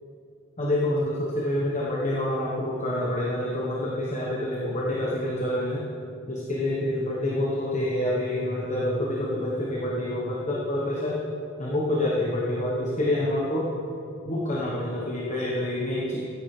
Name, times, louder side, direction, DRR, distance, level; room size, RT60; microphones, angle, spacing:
voice 1, 0.6-5.8 6.3-11.2 11.6-13.7 14.2-16.2, left 1 dB, 35° left, -4 dB, 1.2 m, -27 dB
15.5 x 10.0 x 3.3 m, 2.9 s
head